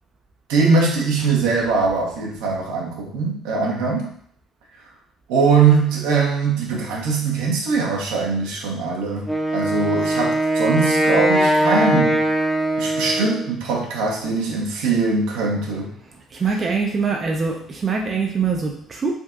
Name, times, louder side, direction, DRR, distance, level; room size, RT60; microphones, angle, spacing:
voice 1, 0.5-4.1 5.3-12.2 12.8-15.9, right 4 dB, 75° right, -1 dB, 0.7 m, -21 dB
Wind instrument woodwind instrument, 9.2-13.5, right 1 dB, ahead, 0.7 m, -20 dB
voice 2, 16.4-19.1, right 5 dB, 40° right, 0 dB, 0.5 m, -23 dB
3.5 x 2.6 x 2.5 m, 0.64 s
hypercardioid pair, 55°, 0 cm